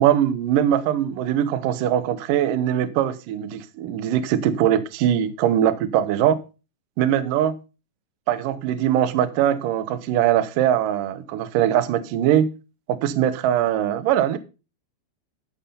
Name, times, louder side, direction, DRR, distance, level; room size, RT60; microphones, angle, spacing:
voice 1, 0.0-6.4 7.0-7.6 8.3-12.5 12.9-14.4, right 10 dB, 80° right, 1.9 m, -21 dB
13.5 x 6.1 x 5.5 m
omnidirectional pair, 5.3 m